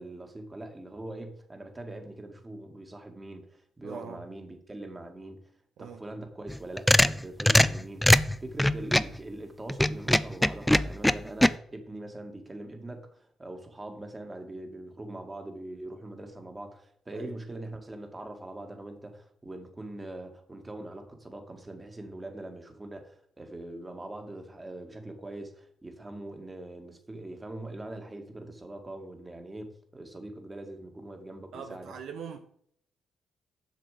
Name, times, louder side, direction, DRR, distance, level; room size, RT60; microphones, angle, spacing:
voice 1, 0.0-5.4 5.8-8.0 8.4-31.9, right 1 dB, 25° right, 5 dB, 2.0 m, -42 dB
voice 2, 3.8-4.2 5.8-6.0 17.1-17.3 31.5-32.4, right 7 dB, 75° right, 5 dB, 0.8 m, -42 dB
sound 1, 6.5-9.2 9.7-11.5, left 1 dB, 5° left, 0.4 m, -22 dB
7.6 x 6.1 x 5.0 m, 0.64 s
supercardioid pair, 50°, 0 cm